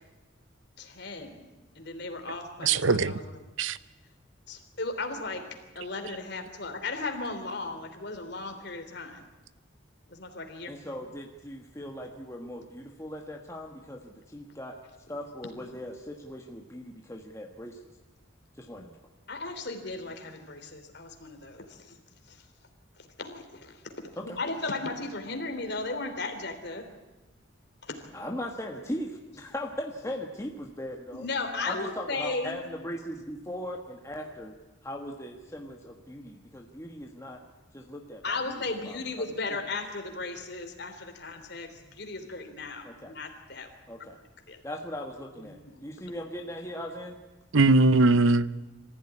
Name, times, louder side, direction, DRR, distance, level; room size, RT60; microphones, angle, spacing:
voice 1, 0.8-1.5 1.7-3.2 4.5-5.5 5.7-9.2 10.1-10.9 19.3-22.0 22.3-22.4 23.2-23.8 24.2-26.9 27.8-28.0 31.1-32.6 38.2-43.7 44.0-44.1 44.5-44.6 45.4-45.7, left 3 dB, 55° left, 6 dB, 3.2 m, -36 dB
voice 2, 2.6-3.2 3.6-3.8 47.5-48.5, right 3 dB, 80° right, 16 dB, 0.8 m, -21 dB
voice 3, 10.7-14.8 15.1-17.9 18.6-18.9 24.2-24.4 28.1-31.3 31.6-34.5 34.8-37.4 37.7-39.4 42.8-43.2 43.9-44.2 44.6-47.2, left 1 dB, 15° left, 1 dB, 1.4 m, -39 dB
24.5 x 15.5 x 9.9 m, 1.1 s
head